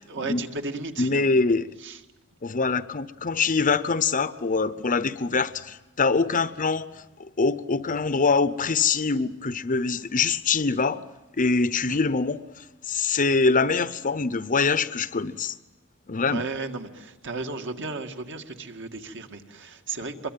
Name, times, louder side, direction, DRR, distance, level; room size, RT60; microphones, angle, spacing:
voice 1, 0.1-1.3 1.8-2.0 11.9-12.0 16.3-20.3, right 3 dB, 60° right, 2.1 m, -34 dB
voice 2, 1.0-1.7 2.4-11.0 11.4-15.5 16.1-16.4, left 4 dB, 40° left, 0.8 m, -24 dB
25.0 x 22.5 x 9.1 m
head